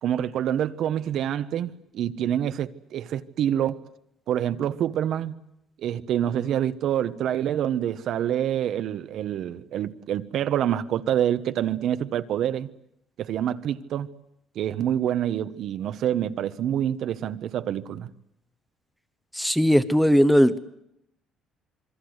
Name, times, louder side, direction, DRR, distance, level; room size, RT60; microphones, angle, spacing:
voice 1, 0.0-3.8 4.3-5.3 5.8-12.7 13.2-14.1 14.5-18.1, right 10 dB, 60° right, 1.1 m, -26 dB
voice 2, 19.3-20.6, equal, ahead, 1.0 m, -18 dB
27.0 x 22.5 x 8.0 m
cardioid pair, 130°, 0 cm